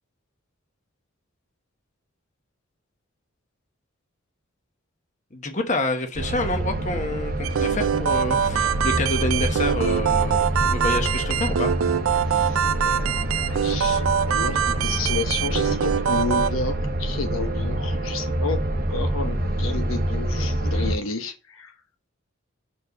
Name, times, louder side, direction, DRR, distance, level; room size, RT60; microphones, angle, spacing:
voice 1, 5.3-11.7, left 1 dB, 35° left, 1.0 m, -28 dB
sound 1, 6.1-21.0, right 1 dB, 45° right, 0.8 m, -26 dB
sound 2, 7.4-16.5, right 8 dB, 85° right, 0.4 m, -24 dB
voice 2, 12.2-13.1 13.5-18.6 18.9-21.7, left 3 dB, 85° left, 1.0 m, -31 dB
5.3 x 4.4 x 5.8 m
head